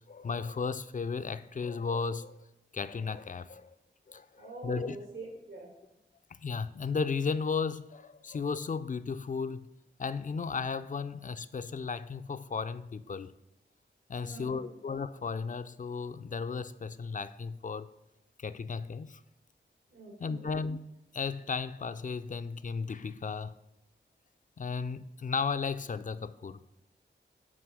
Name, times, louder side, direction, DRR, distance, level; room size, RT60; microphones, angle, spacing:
voice 1, 0.1-2.4 2.7-3.7 4.1-5.0 6.4-9.7 10.0-13.3 14.1-17.9 18.4-19.2 20.2-20.8 21.1-23.5 24.6-26.7, left 5 dB, 45° left, 0.4 m, -35 dB
voice 2, 4.4-5.7 14.2-14.7 19.9-20.5, right 2 dB, 85° right, 1.7 m, -45 dB
6.1 x 4.5 x 6.2 m
cardioid pair, 50°, 19 cm